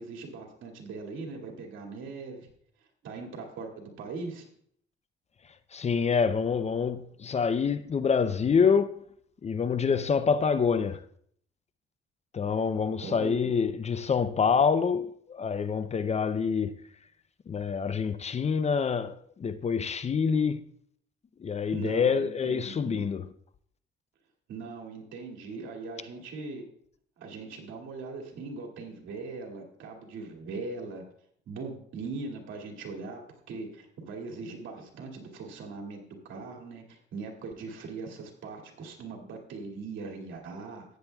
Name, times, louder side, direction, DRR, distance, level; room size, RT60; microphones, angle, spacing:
voice 1, 0.0-2.5 3.0-4.4 13.0-13.5 21.7-23.0 24.5-26.6 27.2-31.0 31.5-40.8, right 4 dB, 80° right, 2.4 m, -40 dB
voice 2, 5.7-9.0 9.4-11.0 12.3-16.8 17.5-20.6 21.4-23.3, left 6 dB, 35° left, 0.5 m, -26 dB
14.5 x 9.5 x 2.3 m
cardioid pair, 90°, 20 cm